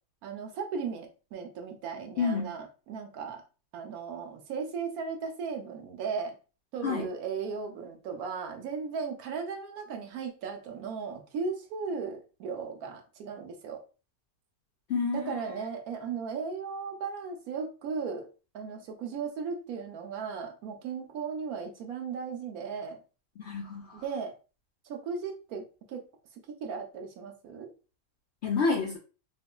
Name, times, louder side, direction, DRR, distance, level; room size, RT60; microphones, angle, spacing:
voice 1, 0.2-3.4 3.7-6.3 6.7-13.8 15.1-18.3 18.5-23.0 23.9-24.3 24.8-26.1 26.5-27.7, right 5 dB, 80° right, 4 dB, 1.2 m, -36 dB
voice 2, 2.2-2.5 6.8-7.1 14.9-15.4 23.4-24.0 28.4-29.0, left 4 dB, 60° left, 1 dB, 0.7 m, -29 dB
4.4 x 2.4 x 2.2 m, 0.34 s
omnidirectional pair, 1.5 m